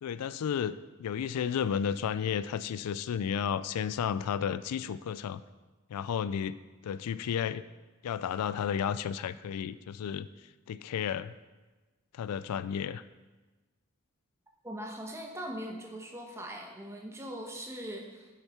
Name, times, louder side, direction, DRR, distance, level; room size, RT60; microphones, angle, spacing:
voice 1, 0.0-5.4 5.9-6.6 6.8-7.6 8.0-10.3 10.7-11.3 12.1-13.0, left 8 dB, 85° left, 15 dB, 0.3 m, -32 dB
voice 2, 14.6-18.3, equal, 10° right, 1 dB, 1.1 m, -41 dB
7.2 x 6.8 x 5.6 m, 1.2 s
head